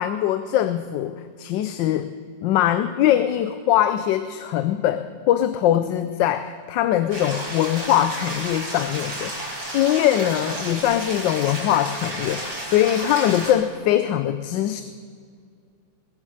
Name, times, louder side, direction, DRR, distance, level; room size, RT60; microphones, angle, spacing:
voice 1, 0.0-2.1 2.4-9.5 9.7-14.8, left 11 dB, 85° left, 11 dB, 1.3 m, -22 dB
sound 1, 7.1-13.5, right 1 dB, 85° right, 4.2 m, -32 dB
21.0 x 7.4 x 6.5 m, 2.2 s
omnidirectional pair, 1.9 m